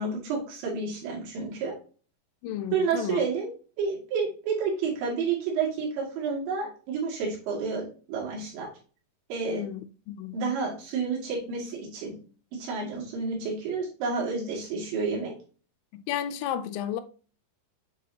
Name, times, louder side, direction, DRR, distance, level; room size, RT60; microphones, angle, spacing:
voice 1, 0.0-1.7 2.7-3.5 3.8-7.8 8.1-8.7 9.3-9.6 10.3-12.1 12.5-15.3, right 5 dB, 75° right, 4.6 m, -30 dB
voice 2, 2.4-3.3 9.4-10.4 15.9-17.0, left 10 dB, 85° left, 2.8 m, -33 dB
9.3 x 4.4 x 2.8 m
omnidirectional pair, 5.3 m